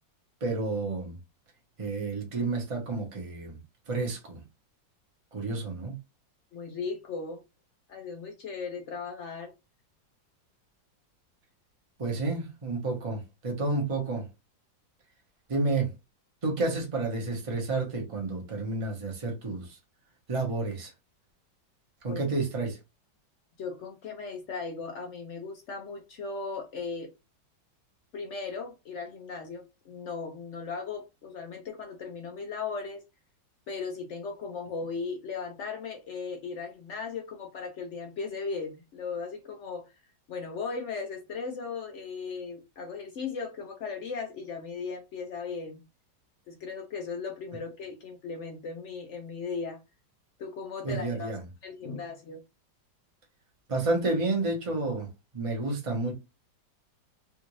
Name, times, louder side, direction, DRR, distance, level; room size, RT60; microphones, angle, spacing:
voice 1, 0.4-1.2 1.8-3.6 3.9-4.4 5.3-6.0 12.0-14.3 15.5-15.9 16.4-19.8 20.3-20.9 22.0-22.8 50.8-51.4 53.7-55.1 55.3-56.1, right 3 dB, 25° right, 0.8 m, -30 dB
voice 2, 6.5-7.4 7.9-9.5 22.0-22.2 23.6-27.1 28.1-33.0 33.7-39.9 40.3-45.8 46.5-49.8 50.4-51.3 51.6-52.4, left 5 dB, 80° left, 0.6 m, -37 dB
3.5 x 2.6 x 3.1 m
omnidirectional pair, 2.0 m